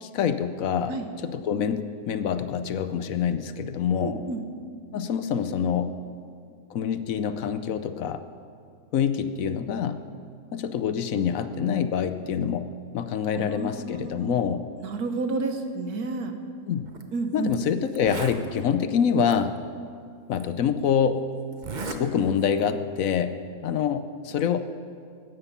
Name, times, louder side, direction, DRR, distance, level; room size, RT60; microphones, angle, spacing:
voice 1, 0.0-1.0 1.2-4.2 4.9-5.9 6.7-8.2 8.9-10.1 10.5-14.6 16.7-16.9 17.3-19.6 20.3-21.3 21.8-23.4 23.6-24.6, left 7 dB, 65° left, 11 dB, 1.0 m, -26 dB
voice 2, 4.0-4.4 13.3-14.4 14.8-16.4 17.1-17.5, right 3 dB, 80° right, 6 dB, 1.7 m, -30 dB
Zipper (clothing), 16.9-17.0 17.5-17.6 17.9-18.4 19.3-19.4 20.3-20.4 21.5-22.0 22.4-22.7, right 4 dB, 35° right, 0.9 m, -35 dB
16.0 x 13.0 x 5.6 m, 2.2 s
omnidirectional pair, 1.6 m